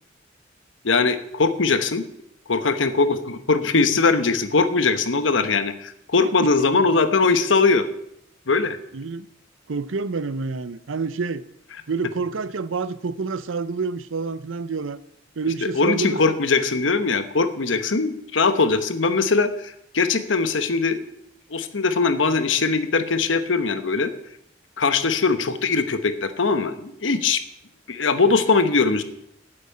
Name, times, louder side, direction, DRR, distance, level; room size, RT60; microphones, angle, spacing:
voice 1, 0.8-2.0 2.5-7.8 8.5-8.8 15.7-21.0 21.5-24.1 24.8-27.4 27.9-29.0, left 4 dB, 75° left, 1.0 m, -21 dB
voice 2, 8.9-9.3 9.7-11.4 11.9-15.0 15.4-16.4, right 4 dB, 85° right, 0.6 m, -28 dB
8.8 x 8.3 x 8.5 m
head